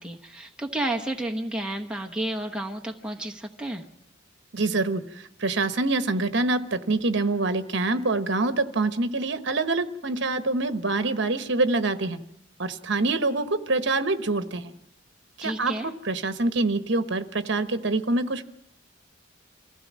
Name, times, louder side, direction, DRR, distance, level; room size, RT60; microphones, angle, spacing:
voice 1, 0.0-3.8 15.4-15.9, right 1 dB, 5° right, 2 dB, 1.0 m, -31 dB
voice 2, 4.5-12.2 12.6-14.7 15.4-18.4, right 2 dB, 55° right, 10 dB, 1.1 m, -25 dB
25.0 x 16.0 x 7.4 m, 0.79 s
head